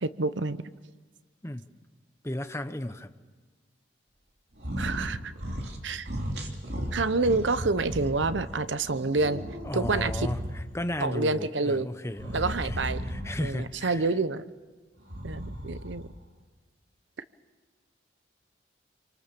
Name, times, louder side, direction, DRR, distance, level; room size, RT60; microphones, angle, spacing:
voice 1, 0.0-0.6 4.8-5.3 5.8-6.1 6.9-9.4 9.7-10.3 11.0-11.9 12.3-13.0 13.4-14.4 15.2-16.0, right 3 dB, 80° right, 13 dB, 0.9 m, -28 dB
voice 2, 2.2-3.1 9.6-14.0, left 1 dB, 15° left, 9 dB, 0.9 m, -34 dB
sound 1, 4.6-5.1 5.4-5.8 6.1-8.4 8.9-10.8 12.1-13.6 15.0-16.0, equal, 60° right, 3.2 m, -35 dB
27.5 x 25.0 x 7.0 m, 1.4 s
head